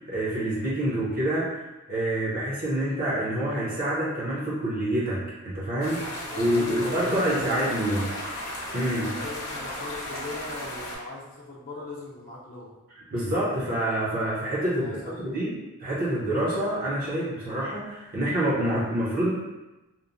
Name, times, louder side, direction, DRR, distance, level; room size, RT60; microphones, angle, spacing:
voice 1, 0.1-1.6 1.9-8.0 8.7-9.1 13.1-14.9 15.2-15.5 15.8-19.3, right 1 dB, 40° right, -9 dB, 0.6 m, -27 dB
sound 1, 5.8-11.0, left 1 dB, 85° left, 0.7 m, -35 dB
voice 2, 6.1-8.1 9.0-12.7 14.7-15.4, left 2 dB, 40° left, -6 dB, 0.6 m, -40 dB
2.9 x 2.0 x 2.5 m, 1.0 s
head